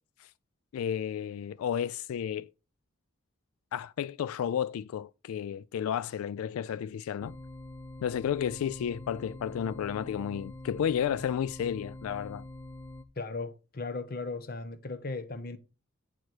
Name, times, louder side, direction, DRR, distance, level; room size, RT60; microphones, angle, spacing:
voice 1, 0.7-2.5 3.7-7.4 8.0-12.5, left 8 dB, 90° left, 0.3 m, -32 dB
sound 1, 7.2-13.0, left 1 dB, 10° left, 0.6 m, -45 dB
voice 2, 13.2-15.6, left 3 dB, 45° left, 0.8 m, -37 dB
9.4 x 4.7 x 4.4 m
head